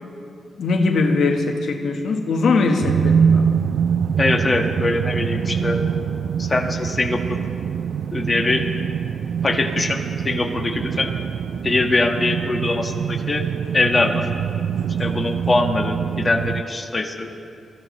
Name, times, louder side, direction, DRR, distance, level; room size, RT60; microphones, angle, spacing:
voice 1, 0.6-3.6, left 3 dB, 75° left, 3 dB, 1.3 m, -21 dB
sound 1, 2.8-16.6, right 7 dB, 80° right, 0.3 m, -24 dB
voice 2, 4.2-5.8 6.4-7.4 8.1-8.7 9.4-11.1 11.6-13.5 13.7-14.3 15.0-17.3, left 2 dB, 30° left, 3 dB, 1.6 m, -22 dB
24.0 x 15.5 x 3.2 m, 2.5 s
cardioid pair, 80°, 0 cm